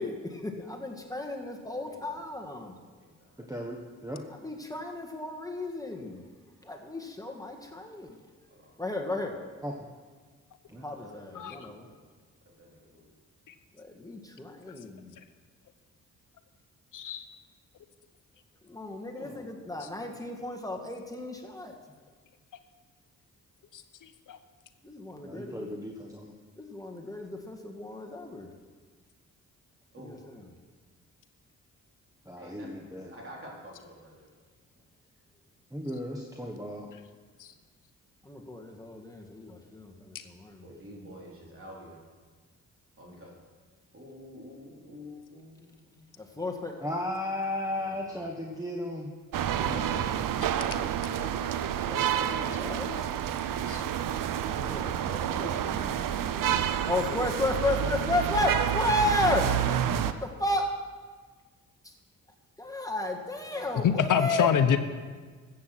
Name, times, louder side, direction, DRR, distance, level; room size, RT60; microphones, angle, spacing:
voice 1, 0.0-2.8 4.4-6.2 6.6-8.2 8.8-9.3 10.8-11.9 13.8-15.2 18.7-21.7 24.8-25.7 26.6-28.5 30.0-30.4 38.2-40.6 46.2-46.7 47.8-47.9 52.5-52.9 54.6-55.9 56.2-56.4 56.9-59.5 60.1-60.7 61.8-61.9 62.6-64.5, left 2 dB, 10° left, 1 dB, 1.7 m, -33 dB
voice 2, 1.7-3.4 8.5-8.8 10.7-12.0 12.5-13.1 19.1-19.5 20.0-20.2 29.9-30.3 32.4-34.3 40.6-42.0 43.0-43.4 43.9-45.7 45.9-46.0 46.5-46.7 49.6-50.1 50.5-51.3 51.7-53.1 56.3-57.9 63.3-64.7, equal, 40° right, -2 dB, 4.0 m, -47 dB
voice 3, 3.4-4.3 9.6-9.8 10.7-10.8 25.2-26.3 32.2-33.1 35.7-36.9 46.8-49.1 49.6-49.7 54.4-54.8, left 1 dB, 10° right, 1 dB, 1.3 m, -36 dB
voice 4, 11.3-11.7 13.5-13.6 14.7-14.8 16.9-17.3 19.8-19.9 23.7-24.4 37.4-37.5 53.7-53.8 63.8-64.8, left 8 dB, 70° left, 9 dB, 0.9 m, -27 dB
sound 1, 49.3-60.1, right 10 dB, 75° right, 0.7 m, -29 dB
14.0 x 8.5 x 6.0 m, 1.5 s
cardioid pair, 65°, 33 cm